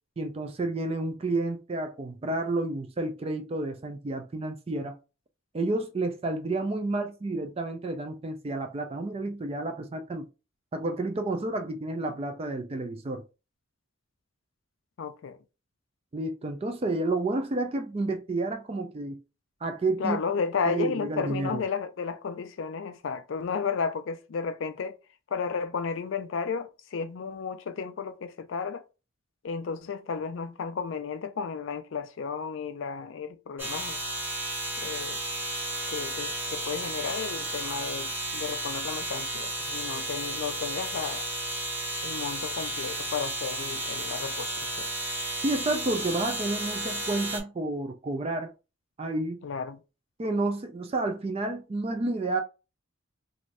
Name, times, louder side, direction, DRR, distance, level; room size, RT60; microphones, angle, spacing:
voice 1, 0.2-5.0 5.5-10.3 10.7-13.2 16.1-19.2 19.6-20.2 20.7-21.6 45.4-48.5 49.0-49.4 50.2-52.4, right 2 dB, 30° right, 0.3 m, -30 dB
voice 2, 15.0-15.4 20.0-25.0 25.3-28.8 29.4-34.0 34.8-35.2 35.9-41.3 42.0-44.9 49.4-49.8, left 5 dB, 65° left, 0.4 m, -33 dB
sound 1, 33.6-47.4, right 1 dB, 10° right, 0.8 m, -33 dB
2.5 x 2.5 x 3.2 m
head